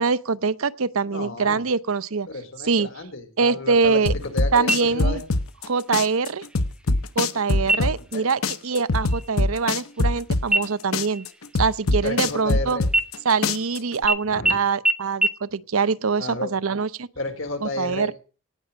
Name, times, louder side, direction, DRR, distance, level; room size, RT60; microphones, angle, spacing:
voice 1, 0.0-2.3 2.6-2.9 3.4-4.1 4.5-5.2 5.7-6.4 7.2-11.3 11.5-12.8 13.2-17.1 17.6-18.1, right 5 dB, 85° right, 16 dB, 0.7 m, -24 dB
voice 2, 1.1-1.6 2.3-5.2 7.7-8.3 12.0-12.9 14.2-14.5 16.2-16.5 17.2-18.1, left 2 dB, 65° left, 6 dB, 3.5 m, -32 dB
sound 1, 4.1-5.7 5.9-8.2 8.4-10.7 10.9-13.2 13.4-14.1, left 2 dB, 90° left, 1.0 m, -22 dB
sound 2, 4.7-5.3 5.7-5.8 6.4-6.9 7.6-8.1 8.5-8.8 9.1-10.2 10.5-12.5 12.9-13.7 14.1-14.2 14.5-14.6 14.9-15.0 15.2-15.3, right 1 dB, 5° right, 0.8 m, -25 dB
18.0 x 6.1 x 8.9 m, 0.38 s
head